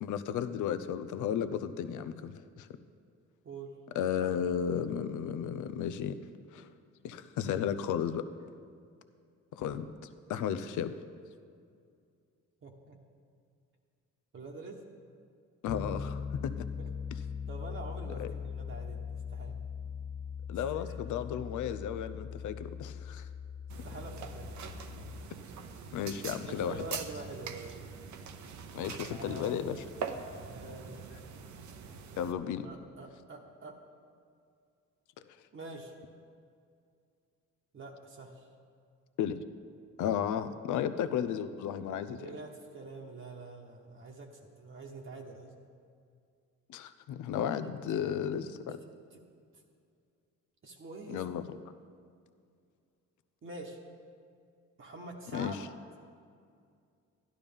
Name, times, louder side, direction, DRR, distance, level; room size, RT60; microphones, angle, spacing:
voice 1, 0.0-2.7 3.9-6.2 6.5-6.7 7.0-8.2 9.5-9.9 10.3-10.9 15.6-16.7 18.2-18.3 20.5-23.3 25.9-26.8 28.7-29.8 32.2-32.7 35.3-35.4 39.2-39.4 40.0-42.3 46.7-48.8 51.1-51.6 55.3-55.6, left 9 dB, 75° left, 12 dB, 0.6 m, -34 dB
voice 2, 12.6-13.0 14.3-14.8 16.8-19.6 20.7-21.1 23.8-24.5 26.5-27.8 29.1-29.6 30.3-31.2 32.6-33.8 35.5-35.9 37.7-38.5 42.2-45.5 47.6-48.0 49.1-49.2 50.6-51.5 53.4-53.8 54.8-55.6, right 3 dB, 45° right, 0 dB, 1.2 m, -46 dB
Piano, 15.7-25.3, left 6 dB, 20° left, 0.3 m, -40 dB
sound 1, 23.7-32.3, right 6 dB, 70° right, 0.9 m, -43 dB
12.0 x 11.5 x 3.6 m, 2.3 s
cardioid pair, 90°, 30 cm